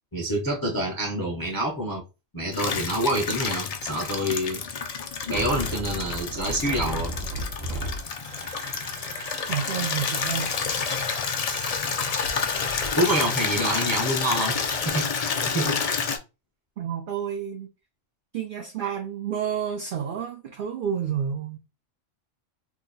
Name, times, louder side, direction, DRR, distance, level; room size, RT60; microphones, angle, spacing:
voice 1, 0.1-2.0 2.3-4.6 5.3-7.2 11.5-11.7 12.9-15.8, right 1 dB, 25° left, 0.5 m, -27 dB
Water tap faucet / Liquid, 2.5-16.2, left 6 dB, 80° left, 0.3 m, -29 dB
sound 1, 5.3-14.9, right 2 dB, 85° right, 1.1 m, -37 dB
voice 2, 9.5-10.7 13.0-13.1 13.4-13.5 16.8-17.7 18.3-21.6, right 8 dB, 60° right, 0.5 m, -30 dB
2.8 x 2.2 x 3.8 m
omnidirectional pair, 1.3 m